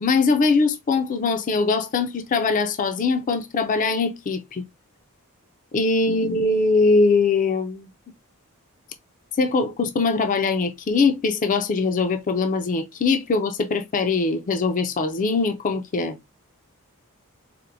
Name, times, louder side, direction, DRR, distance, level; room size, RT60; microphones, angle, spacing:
voice 1, 0.0-4.6 5.7-7.9 9.4-16.2, left 4 dB, 35° left, 0.4 m, -22 dB
4.2 x 2.0 x 2.6 m
head